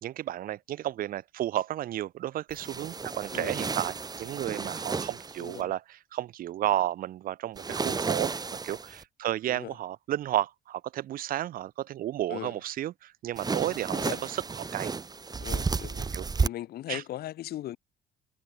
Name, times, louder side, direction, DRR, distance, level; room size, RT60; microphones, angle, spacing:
voice 1, 0.0-8.3 8.6-14.9 16.1-16.2 16.9-17.0, right 13 dB, 55° right, 0.7 m, -32 dB
sound 1, 2.5-5.6 7.6-9.0 13.4-16.5, right 4 dB, 25° right, 1.6 m, -32 dB
voice 2, 5.4-5.7 9.5-9.7 12.3-12.6 13.9-14.2 15.4-16.1 16.4-17.8, left 13 dB, 65° left, 2.0 m, -38 dB
cardioid pair, 110°, 17 cm